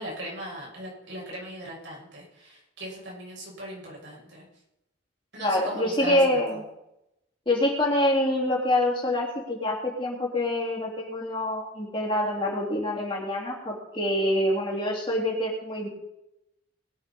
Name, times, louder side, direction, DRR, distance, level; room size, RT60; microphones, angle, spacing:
voice 1, 0.0-4.4 5.3-6.4, equal, 65° right, -4 dB, 6.2 m, -38 dB
voice 2, 5.4-6.6 7.5-15.9, left 1 dB, 25° left, -4 dB, 3.6 m, -26 dB
21.5 x 7.3 x 5.5 m, 0.87 s
head